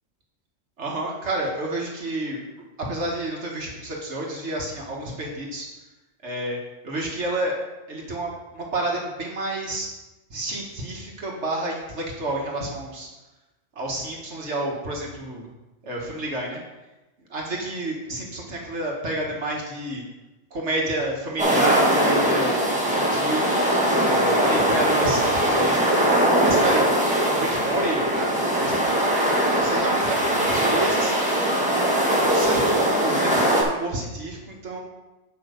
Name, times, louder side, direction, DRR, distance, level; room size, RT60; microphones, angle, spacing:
voice 1, 0.8-2.4 2.8-5.7 6.2-6.6 6.8-7.6 7.9-9.9 10.3-13.1 13.8-15.5 15.8-16.6 17.3-20.0 20.5-22.5 22.8-23.5 24.0-25.8 26.4-29.1 29.5-31.7 32.2-34.8, right 1 dB, 70° right, -1 dB, 1.7 m, -30 dB
sound 1, 21.4-33.6, right 1 dB, 5° right, 1.5 m, -21 dB
8.6 x 5.4 x 5.1 m, 1.1 s
omnidirectional pair, 1.2 m